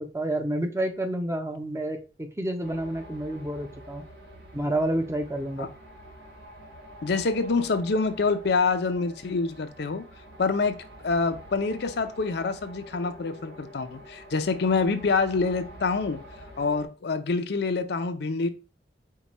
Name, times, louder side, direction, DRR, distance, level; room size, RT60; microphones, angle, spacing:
voice 1, 0.0-4.0 4.5-5.7, right 1 dB, 15° right, 5 dB, 0.5 m, -29 dB
sound 1, 2.6-16.9, equal, 75° right, 1.2 m, -47 dB
voice 2, 7.0-10.1 10.4-10.8 11.0-16.2 16.6-18.5, left 4 dB, 60° left, 9 dB, 0.5 m, -26 dB
4.6 x 2.2 x 4.0 m, 0.33 s
head